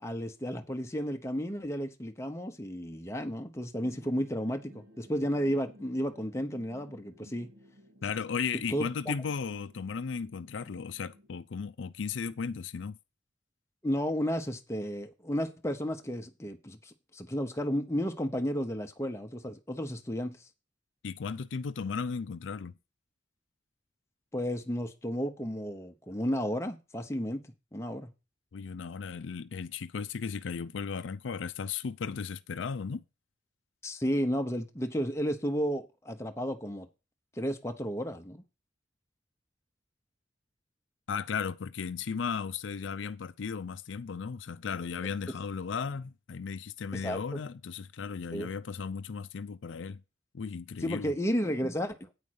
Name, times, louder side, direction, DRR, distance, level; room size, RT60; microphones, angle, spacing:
voice 1, 0.0-7.5 8.7-9.1 13.8-20.4 24.3-27.4 27.7-28.1 33.8-36.9 37.4-38.4 46.9-47.4 48.3-48.5 50.8-52.0, equal, 15° left, 0.8 m, -33 dB
sound 1, 3.8-11.3, equal, 65° right, 1.5 m, -56 dB
voice 2, 8.0-13.0 21.0-22.7 28.5-33.0 41.1-50.0 50.3-51.1, left 6 dB, 80° left, 0.5 m, -35 dB
8.7 x 5.4 x 6.3 m
head